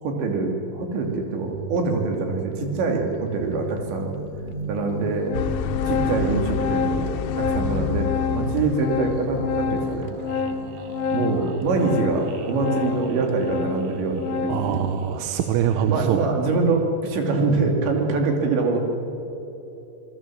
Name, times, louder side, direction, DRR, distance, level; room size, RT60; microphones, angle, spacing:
voice 1, 0.0-4.1 4.7-5.4 5.8-10.1 11.1-14.9 15.8-18.8, right 3 dB, 70° right, 2 dB, 5.0 m, -24 dB
sound 1, 0.9-16.9, right 4 dB, 55° right, 2.1 m, -38 dB
Organ, 3.5-3.6 4.5-4.6 4.9-14.8, left 6 dB, 70° left, 3.5 m, -28 dB
sound 2, 5.3-10.4, left 11 dB, 90° left, 3.2 m, -30 dB
voice 2, 14.5-16.2, right 10 dB, 85° right, 7 dB, 3.4 m, -23 dB
27.0 x 19.5 x 7.7 m, 3.0 s
omnidirectional pair, 5.5 m